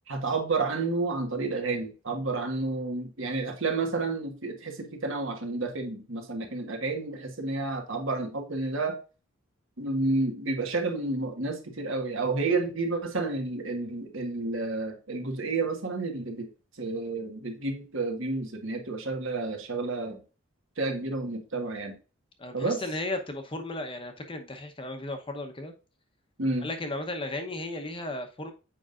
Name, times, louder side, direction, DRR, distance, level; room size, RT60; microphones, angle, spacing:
voice 1, 0.1-9.0 9.8-16.5 16.8-20.2 20.8-22.0 22.5-22.8 26.4-26.7, right 3 dB, 70° right, 1.5 m, -30 dB
voice 2, 22.4-25.7 26.6-28.5, left 2 dB, 25° left, 0.8 m, -35 dB
7.4 x 5.3 x 2.5 m
head